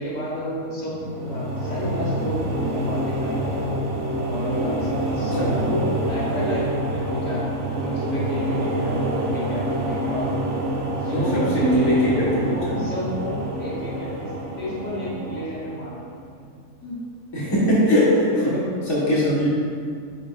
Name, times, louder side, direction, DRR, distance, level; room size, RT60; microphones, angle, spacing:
voice 1, 0.0-3.6 4.3-7.5 7.8-10.3 10.8-14.3 14.6-16.0 16.3-16.4 16.8-17.0 18.3-18.7 19.4-19.5, equal, 65° left, -6 dB, 1.9 m, -31 dB
sound 1, 0.9-16.2, right 1 dB, 60° right, 1.0 m, -27 dB
voice 2, 11.1-12.8 17.3-18.5 18.9-19.5, equal, 20° left, -8 dB, 1.4 m, -21 dB
9.4 x 4.9 x 2.5 m, 2.1 s
omnidirectional pair, 1.5 m